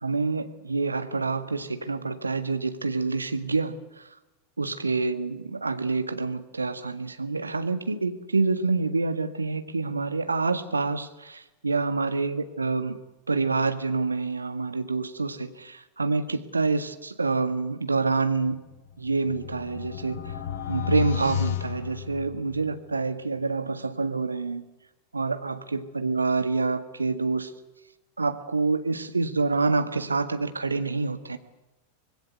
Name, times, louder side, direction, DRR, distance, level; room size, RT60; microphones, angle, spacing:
voice 1, 0.0-3.8 4.6-13.0 13.3-18.6 19.0-20.2 20.7-24.6 25.1-27.5 28.2-31.4, right 3 dB, 80° right, 9 dB, 1.7 m, -27 dB
sound 1, 18.7-22.7, left 10 dB, 55° left, 2.7 m, -32 dB
25.0 x 20.5 x 8.1 m, 1.0 s
figure-of-eight pair, 90°, 0 cm